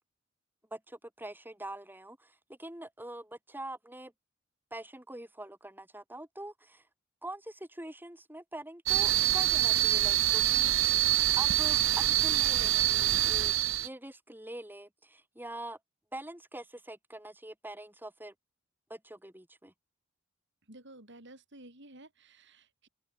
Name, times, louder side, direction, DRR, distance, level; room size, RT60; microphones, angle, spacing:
voice 1, 0.7-4.1 4.7-6.8 7.2-10.7 11.4-13.5 13.8-15.8 16.1-18.3 18.9-19.7, right 1 dB, 10° right, 6.0 m, -44 dB
sound 1, 8.9-13.9, right 14 dB, 80° right, 1.6 m, -26 dB
voice 2, 20.7-22.9, right 1 dB, 60° right, 7.5 m, -53 dB
open air
head